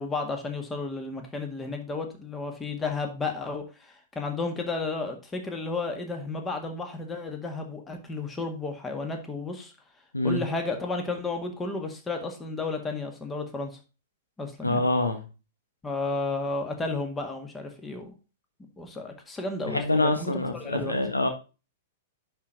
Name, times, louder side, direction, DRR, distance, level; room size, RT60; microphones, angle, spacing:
voice 1, 0.0-9.7 10.2-13.7 14.4-14.8 15.8-18.2 18.8-21.0, left 3 dB, 15° left, 1.8 m, -32 dB
voice 2, 14.6-15.2 19.6-21.3, left 2 dB, 85° left, 1.5 m, -25 dB
10.5 x 4.5 x 3.8 m
figure-of-eight pair, 105°, 0 cm